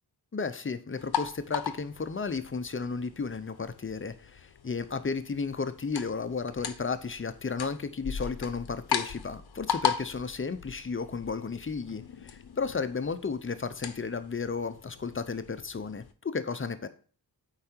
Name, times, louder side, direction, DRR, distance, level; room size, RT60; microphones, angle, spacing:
voice 1, 0.3-16.9, left 5 dB, 30° left, 10 dB, 0.7 m, -33 dB
sound 1, 1.0-16.1, left 7 dB, 70° left, 0.8 m, -38 dB
8.5 x 4.9 x 4.4 m, 0.42 s
wide cardioid pair, 120°, 40 cm